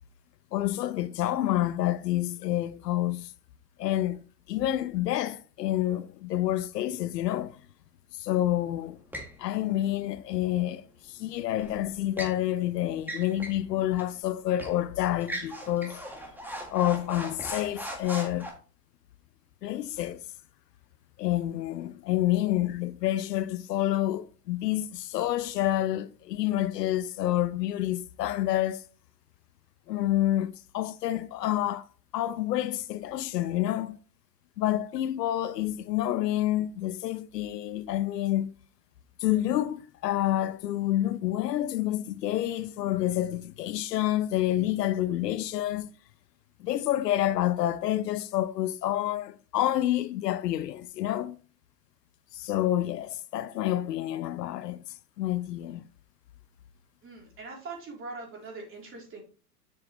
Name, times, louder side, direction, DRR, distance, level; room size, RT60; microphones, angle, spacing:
voice 1, 0.5-3.3 3.8-4.2 4.5-7.6 8.2-9.0 9.4-10.8 11.1-16.0 16.7-18.5 19.6-20.2 21.2-28.8 29.9-31.9 32.1-34.0 34.6-38.5 39.2-45.9 46.6-51.4 52.3-54.8 55.2-55.8, left 13 dB, 85° left, 0.8 m, -28 dB
sound 1, 9.1-9.4 11.6-12.4 13.0-13.6 14.0-14.1 14.6-14.8 15.2-18.5, right 1 dB, 5° right, 1.7 m, -39 dB
voice 2, 57.0-59.2, right 3 dB, 25° right, 3.4 m, -42 dB
7.5 x 6.2 x 3.1 m
hypercardioid pair, 125°, 47 cm